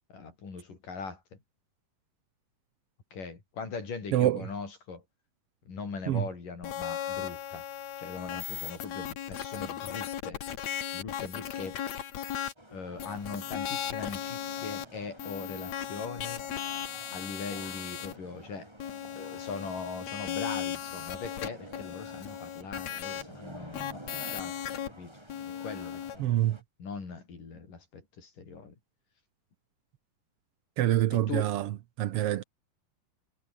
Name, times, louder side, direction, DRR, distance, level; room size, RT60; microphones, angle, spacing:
voice 1, 0.1-1.4 3.1-5.0 5.7-7.6 8.0-10.4 10.9-11.8 12.7-16.4 17.1-18.7 19.2-25.1 25.6-26.3 26.8-28.8 31.1-31.5, left 4 dB, 75° left, 7.1 m, -40 dB
sound 1, 6.6-12.5 13.0-14.9 15.2-18.1 18.8-23.2 23.7-24.9 25.3-26.2, left 10 dB, 60° left, 2.7 m, -37 dB
sound 2, 12.6-26.6, equal, 5° right, 8.0 m, -50 dB
voice 2, 26.2-26.6 30.8-31.7 32.0-32.4, right 13 dB, 85° right, 1.3 m, -26 dB
omnidirectional pair, 3.8 m